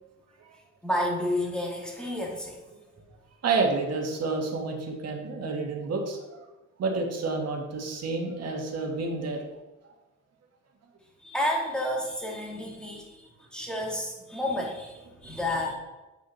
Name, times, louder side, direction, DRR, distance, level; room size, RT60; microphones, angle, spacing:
voice 1, 0.8-2.6 11.2-15.7, left 1 dB, 5° left, -2 dB, 2.2 m, -31 dB
voice 2, 3.4-6.4 6.8-9.5, right 3 dB, 60° right, 1 dB, 1.7 m, -29 dB
8.8 x 5.0 x 4.0 m, 1.1 s
cardioid pair, 90°, 30 cm